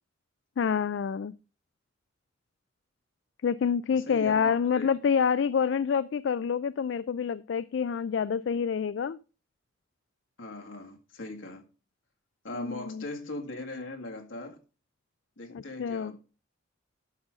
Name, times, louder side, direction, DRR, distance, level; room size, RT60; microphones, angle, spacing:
voice 1, 0.6-1.3 3.4-9.2 12.5-13.0 15.5-16.1, left 6 dB, 65° left, 0.3 m, -27 dB
voice 2, 3.9-4.9 10.4-11.6 12.4-14.6 15.4-16.2, left 2 dB, 85° left, 1.8 m, -39 dB
11.0 x 6.4 x 3.6 m
head